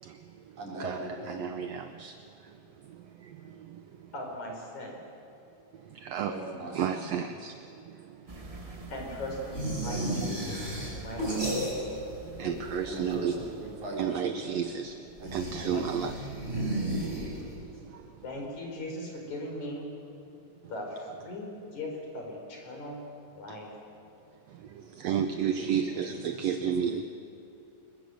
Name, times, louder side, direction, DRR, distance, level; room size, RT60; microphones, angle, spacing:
voice 1, 0.0-1.0 1.3-4.1 5.7-6.4 6.7-8.9 12.2-13.4 14.0-18.2 21.1-21.2 23.5-23.6 24.5-27.0, right 8 dB, 75° right, 8 dB, 1.5 m, -34 dB
voice 2, 0.6-1.4 6.2-7.1 12.9-14.8 15.2-15.9 25.6-27.0, right 1 dB, 60° right, -3 dB, 5.8 m, -40 dB
voice 3, 4.1-5.0 8.9-11.5 18.2-19.9 20.7-23.0 23.4-23.7, left 1 dB, 55° left, 0 dB, 5.7 m, -39 dB
sound 1, 8.3-14.2, right 2 dB, 30° right, 0.6 m, -47 dB
sound 2, 9.5-12.1 12.4-13.2 15.2-17.7, right 1 dB, 15° right, 7.3 m, -33 dB
26.0 x 21.5 x 7.8 m, 2.7 s
omnidirectional pair, 3.9 m